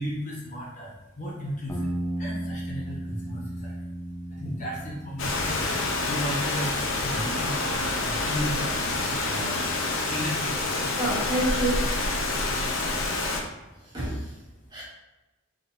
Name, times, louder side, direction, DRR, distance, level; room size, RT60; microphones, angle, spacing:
voice 1, 0.0-1.9 2.2-3.7 4.3-5.6 6.0-9.5 10.1-11.0, equal, 35° left, -5 dB, 1.0 m, -35 dB
sound 1, 1.7-6.4, right 1 dB, 15° left, 0.6 m, -35 dB
Rain, 5.2-13.4, left 2 dB, 70° left, 0.6 m, -27 dB
voice 2, 10.8-11.8 13.9-14.2 14.7-14.8, right 1 dB, 20° right, -7 dB, 1.3 m, -28 dB
4.2 x 3.7 x 2.6 m, 1.0 s
head